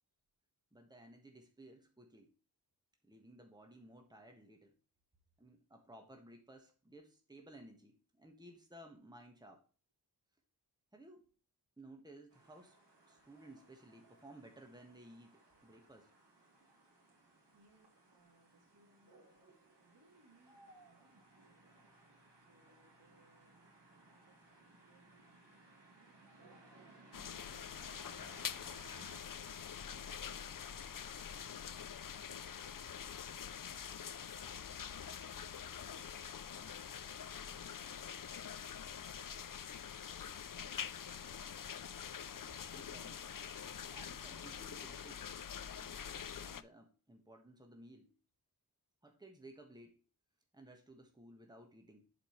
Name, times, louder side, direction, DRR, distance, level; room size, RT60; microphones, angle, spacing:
voice 1, 0.7-2.3 3.0-4.8 5.4-9.6 10.9-11.3 11.8-12.8 13.1-16.1 42.3-43.3 43.9-45.3 45.8-46.1 46.4-48.2 49.0-50.0 50.5-52.1, right 1 dB, 10° right, 3 dB, 1.5 m, -57 dB
sound 1, 12.3-29.2, right 2 dB, 80° right, 2.7 m, -63 dB
voice 2, 17.5-21.9 22.5-23.6 24.1-29.4 29.8-34.0 34.5-38.4 38.8-39.7, right 2 dB, 65° right, 0 dB, 2.7 m, -71 dB
sound 2, 27.1-46.6, left 8 dB, 50° left, 0.5 m, -45 dB
11.0 x 5.0 x 3.2 m, 0.37 s
wide cardioid pair, 70°, 41 cm